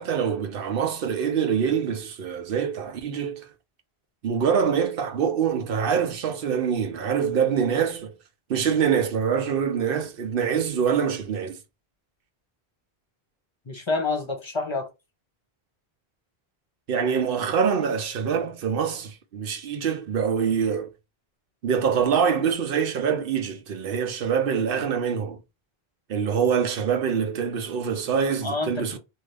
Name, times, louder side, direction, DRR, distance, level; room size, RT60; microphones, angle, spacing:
voice 1, 0.0-3.5 4.2-8.1 8.5-11.6 16.9-20.9 21.6-25.4 26.1-29.0, right 7 dB, 65° right, 0.8 m, -25 dB
voice 2, 13.6-14.9 28.4-29.0, left 3 dB, 30° left, 0.8 m, -28 dB
2.7 x 2.4 x 3.2 m
omnidirectional pair, 1.0 m